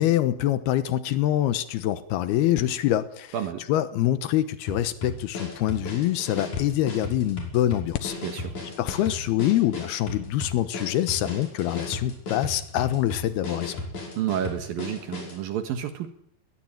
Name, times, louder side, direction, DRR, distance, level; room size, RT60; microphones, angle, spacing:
voice 1, 0.0-3.4 3.7-8.1 8.8-13.8, left 13 dB, 85° left, 12 dB, 3.1 m, -25 dB
sound 1, 2.6-9.7, left 10 dB, 65° left, 2.7 m, -43 dB
sound 2, 4.7-15.4, left 2 dB, 50° left, 6.9 m, -35 dB
voice 2, 8.2-8.5 14.2-16.1, right 9 dB, 70° right, 8 dB, 3.1 m, -30 dB
21.0 x 20.0 x 9.0 m, 0.67 s
omnidirectional pair, 4.4 m